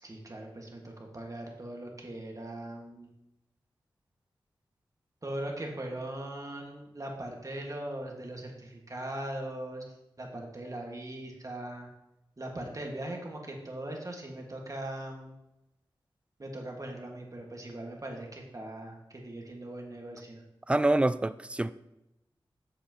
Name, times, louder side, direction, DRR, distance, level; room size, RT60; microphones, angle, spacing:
voice 1, 0.0-3.1 5.2-9.8 10.2-11.9 12.4-15.3 16.4-20.4, right 1 dB, 40° right, 1.8 m, -40 dB
voice 2, 20.7-21.7, right 2 dB, 10° right, 0.3 m, -26 dB
7.9 x 7.0 x 3.0 m
cardioid pair, 45°, 9 cm